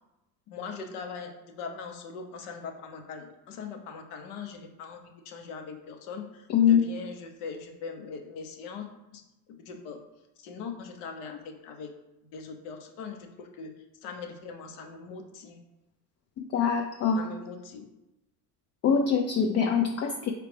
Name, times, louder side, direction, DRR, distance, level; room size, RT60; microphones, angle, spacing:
voice 1, 0.5-9.2 9.5-10.0 10.4-11.9 12.2-13.7 14.0-15.6 17.1-17.9, left 5 dB, 75° left, 5 dB, 0.9 m, -41 dB
voice 2, 6.5-6.9 16.4-17.2 18.8-20.3, left 7 dB, 35° left, 4 dB, 0.4 m, -24 dB
4.8 x 3.3 x 3.3 m, 0.94 s
hypercardioid pair, 85°, 47 cm